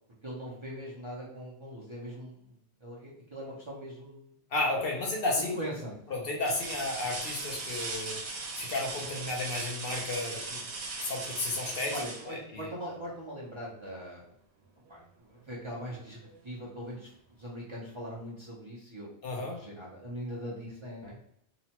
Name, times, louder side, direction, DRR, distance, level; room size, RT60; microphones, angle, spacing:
voice 1, 0.2-2.5 2.8-4.3 5.4-5.9 11.9-14.3 14.9-16.2 16.4-19.1 19.4-21.2, equal, 35° right, -6 dB, 0.5 m, -41 dB
voice 2, 4.5-5.6 6.1-10.6 11.0-11.9 12.3-12.7 19.2-19.6, left 2 dB, 60° left, 0 dB, 0.8 m, -33 dB
sound 1, 4.7-5.1 5.7-5.8 6.4-13.1 14.9-15.0 15.5-16.5 17.8-17.9, right 3 dB, 75° right, 0.9 m, -39 dB
2.9 x 2.1 x 2.8 m, 0.71 s
omnidirectional pair, 1.2 m